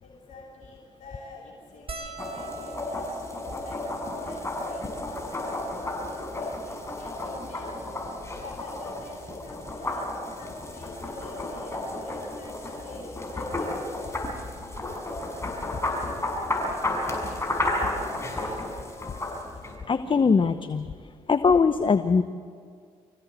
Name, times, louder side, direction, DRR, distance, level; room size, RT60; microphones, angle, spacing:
voice 1, 0.0-14.0, left 2 dB, 65° left, -2 dB, 3.2 m, -46 dB
sound 1, 1.9-6.5 7.2-7.3 7.5-7.7 9.0-9.2 10.7-10.8 11.0-11.2, right 2 dB, 40° right, 2.3 m, -45 dB
sound 2, 2.2-19.7, left 1 dB, 20° left, 6.0 m, -32 dB
voice 2, 18.7-19.2 19.9-20.9 21.3-22.2, left 5 dB, 40° left, 11 dB, 0.9 m, -22 dB
25.0 x 15.5 x 8.1 m, 2.1 s
hypercardioid pair, 50°, 13 cm